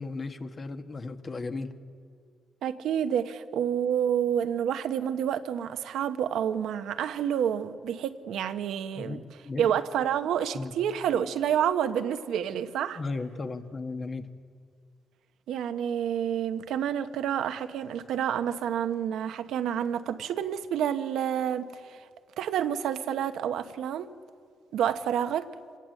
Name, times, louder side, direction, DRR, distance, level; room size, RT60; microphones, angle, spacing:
voice 1, 0.0-1.7 8.9-9.6 10.5-10.7 12.9-14.3, left 3 dB, 40° left, 1.4 m, -35 dB
voice 2, 2.6-9.2 9.6-13.0 15.5-22.1 22.4-24.1 24.7-25.5, right 9 dB, 85° right, 1.0 m, -29 dB
25.0 x 19.0 x 7.8 m
cardioid pair, 75°, 0 cm